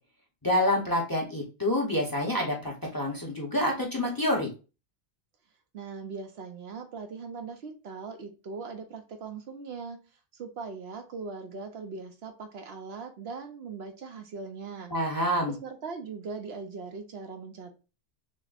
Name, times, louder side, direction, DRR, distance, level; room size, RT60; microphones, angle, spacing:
voice 1, 0.4-4.5 14.9-15.5, left 1 dB, 20° left, -1 dB, 0.8 m, -27 dB
voice 2, 5.7-10.0 10.3-14.9 15.5-17.8, right 4 dB, 65° right, 6 dB, 0.9 m, -40 dB
6.2 x 2.1 x 2.5 m, 0.31 s
omnidirectional pair, 1.2 m